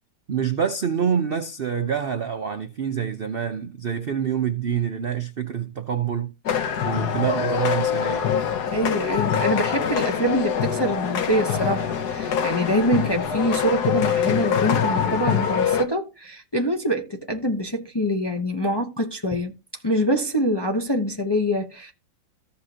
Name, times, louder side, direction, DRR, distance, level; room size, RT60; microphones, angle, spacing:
voice 1, 0.3-6.3 6.8-8.4, right 7 dB, 70° right, 0.5 m, -26 dB
sound 1, 6.5-15.8, left 7 dB, 65° left, 1.4 m, -24 dB
voice 2, 8.7-19.6 19.8-21.9, equal, 25° left, 0.6 m, -25 dB
14.5 x 5.7 x 2.8 m
omnidirectional pair, 2.0 m